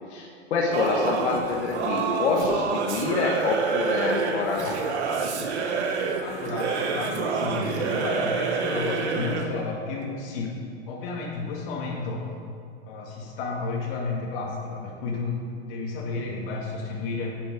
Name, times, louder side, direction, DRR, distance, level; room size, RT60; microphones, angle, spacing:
voice 1, 0.1-4.8, left 4 dB, 90° left, -1 dB, 1.3 m, -26 dB
Singing / Musical instrument, 0.7-9.6, right 5 dB, 85° right, 1.2 m, -28 dB
voice 2, 6.2-10.6 10.9-12.3 12.8-17.4, left 3 dB, 55° left, -1 dB, 2.4 m, -32 dB
9.1 x 7.3 x 5.0 m, 2.4 s
supercardioid pair, 140°, 33 cm